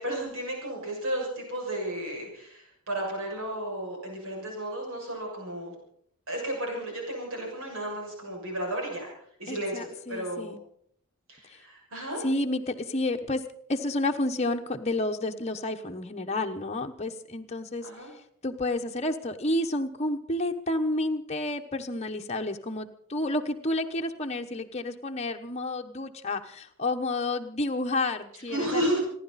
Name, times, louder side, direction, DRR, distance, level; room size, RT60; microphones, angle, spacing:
voice 1, 0.0-5.7 6.3-9.1 9.4-10.6 11.3-12.2 17.8-18.1 28.5-29.0, right 1 dB, 70° right, -1 dB, 6.8 m, -33 dB
voice 2, 9.5-10.6 12.2-13.4 13.7-17.9 18.4-29.0, left 2 dB, 30° left, 3 dB, 1.1 m, -30 dB
29.0 x 11.0 x 4.2 m, 0.66 s
head